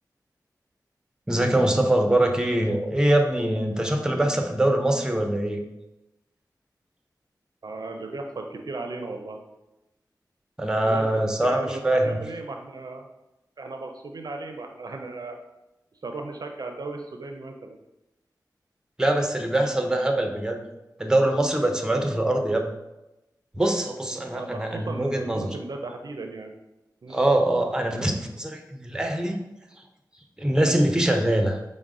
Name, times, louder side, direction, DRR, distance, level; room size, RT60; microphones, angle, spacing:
voice 1, 1.3-5.6 10.6-12.2 19.0-20.6 21.0-22.7 23.5-25.5 27.1-29.4 30.4-31.6, right 1 dB, 10° right, 4 dB, 0.6 m, -23 dB
voice 2, 7.6-9.4 10.8-13.1 13.6-15.4 16.0-17.8 24.3-26.6 27.0-27.2, right 3 dB, 60° right, 4 dB, 0.4 m, -36 dB
4.7 x 2.1 x 3.6 m, 0.95 s
cardioid pair, 40°, 7 cm